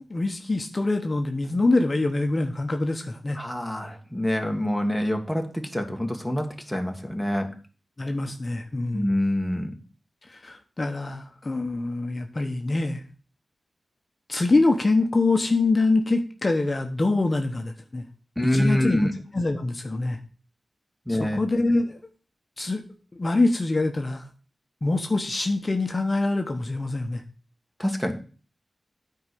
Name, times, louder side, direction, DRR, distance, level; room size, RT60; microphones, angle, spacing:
voice 1, 0.1-3.4 8.0-9.1 10.3-13.0 14.3-18.0 18.5-20.2 21.1-22.0 22.6-22.8 23.1-24.3 24.8-27.2, left 2 dB, 35° left, 5 dB, 1.0 m, -25 dB
voice 2, 3.3-7.5 8.9-9.7 18.4-19.1 21.1-21.4 27.8-28.1, left 1 dB, ahead, 5 dB, 1.6 m, -26 dB
9.4 x 4.7 x 6.8 m, 0.38 s
wide cardioid pair, 85°, 0 cm